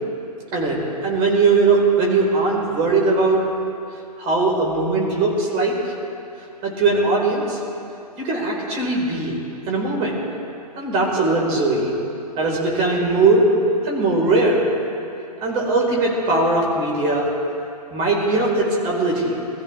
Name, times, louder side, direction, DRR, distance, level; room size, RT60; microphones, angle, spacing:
voice 1, 0.5-3.4 4.2-5.7 6.6-7.6 8.2-9.3 9.7-10.1 10.8-11.9 12.4-13.5 13.8-14.6 15.4-17.2 17.9-19.4, right 3 dB, 30° right, -2 dB, 4.8 m, -20 dB
23.5 x 14.5 x 3.6 m, 2.6 s
figure-of-eight pair, 115°, 20 cm